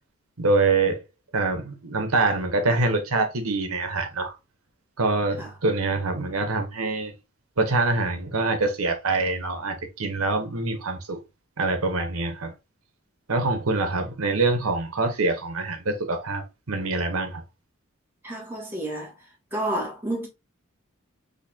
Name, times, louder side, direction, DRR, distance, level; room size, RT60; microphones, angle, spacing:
voice 1, 0.4-1.0 1.3-4.3 5.0-7.1 7.6-11.2 11.6-12.5 13.3-17.4, right 3 dB, 90° right, 1.0 m, -25 dB
voice 2, 18.2-19.1 19.5-20.3, right 1 dB, 10° right, 1.4 m, -30 dB
6.6 x 2.7 x 2.8 m
head